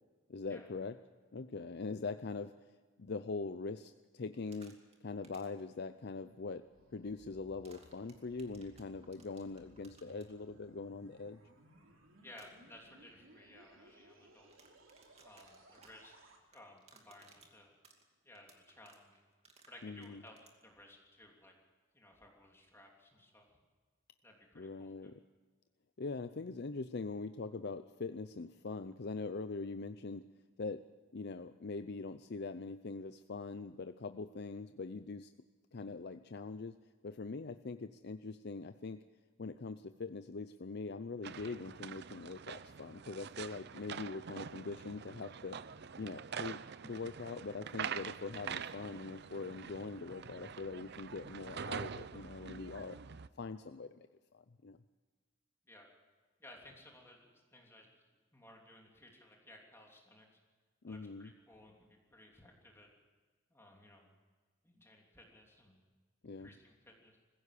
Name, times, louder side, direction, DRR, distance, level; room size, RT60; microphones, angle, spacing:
voice 1, 0.3-1.0 1.3-2.7 3.0-6.6 6.9-11.4 19.8-20.2 24.6-25.1 26.0-30.2 30.6-30.8 31.1-35.3 35.7-36.8 37.0-39.0 39.4-45.6 46.0-53.0 53.4-54.1 54.3-54.8 60.8-61.3 66.2-66.5, left 4 dB, 55° left, 10 dB, 0.6 m, -42 dB
sound 1, 4.3-5.0 5.2-5.6 7.6-10.3 12.3-12.5 14.4-20.6, right 4 dB, 30° right, 2.5 m, -62 dB
sound 2, 6.3-16.4, right 1 dB, 80° right, 3.1 m, -63 dB
voice 2, 12.2-14.5 15.2-16.1 16.5-17.7 18.2-19.2 19.7-20.4 20.6-21.5 21.9-23.6 24.2-25.1 55.7-55.9 56.4-57.9 58.3-60.4 60.8-62.9 63.5-64.1 64.6-65.8 66.4-67.2, left 1 dB, 10° left, 0 dB, 3.1 m, -58 dB
sound 3, 41.2-53.3, right 7 dB, 55° right, 0.6 m, -45 dB
20.5 x 16.0 x 8.4 m, 1.4 s
head